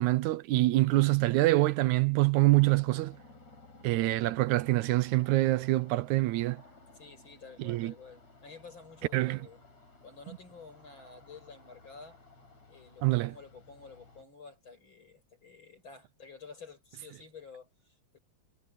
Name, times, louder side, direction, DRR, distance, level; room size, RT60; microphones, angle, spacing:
voice 1, 0.0-3.2 3.8-6.6 7.6-7.9 9.1-9.4 13.0-13.3, right 19 dB, 80° right, 2.0 m, -25 dB
sound 1, 2.6-14.2, left 3 dB, 65° left, 7.9 m, -57 dB
voice 2, 6.9-9.6 10.0-12.2 12.7-18.2, left 5 dB, 40° left, 7.0 m, -51 dB
omnidirectional pair, 3.4 m